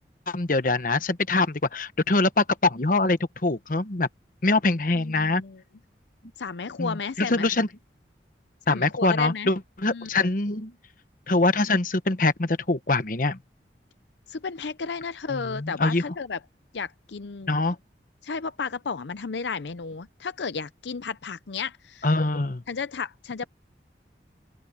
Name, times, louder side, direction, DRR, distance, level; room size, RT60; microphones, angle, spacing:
voice 1, 0.3-4.1 4.4-5.4 6.8-7.7 8.7-10.7 11.3-13.4 15.3-16.0 17.5-17.8 22.0-22.6, left 2 dB, 50° left, 1.1 m, -24 dB
voice 2, 4.9-5.6 6.4-7.5 8.7-9.5 9.9-10.1 14.3-16.4 16.7-17.5 18.2-22.1 22.7-23.5, left 5 dB, 85° left, 0.6 m, -33 dB
open air
head